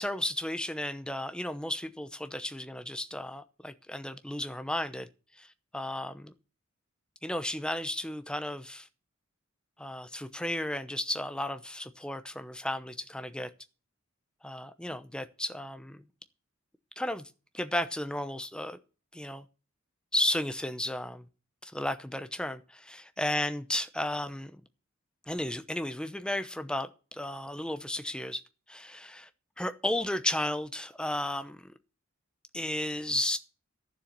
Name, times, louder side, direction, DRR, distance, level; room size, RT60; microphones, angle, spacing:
voice 1, 0.0-5.1 5.4-6.3 7.2-8.9 9.8-13.5 14.4-16.0 17.0-18.8 19.1-19.5 20.1-21.3 21.6-24.6 25.3-28.4 28.7-29.3 29.6-31.7 32.5-33.4, left 1 dB, 5° left, 0.8 m, -34 dB
12.5 x 7.3 x 6.8 m
head